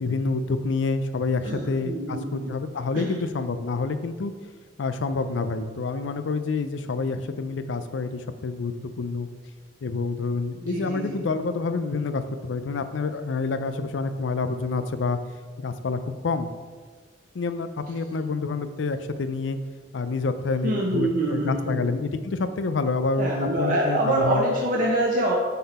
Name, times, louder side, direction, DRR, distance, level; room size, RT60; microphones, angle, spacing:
voice 1, 0.0-4.3 4.8-9.3 9.8-15.2 15.6-16.5 17.3-19.6 19.9-24.5, left 4 dB, 85° left, 10 dB, 0.5 m, -28 dB
voice 2, 1.4-2.5 2.9-3.1 10.6-11.2 20.6-21.8 23.2-25.3, right 1 dB, 45° right, -3 dB, 0.8 m, -25 dB
5.7 x 5.7 x 4.2 m, 1.5 s
head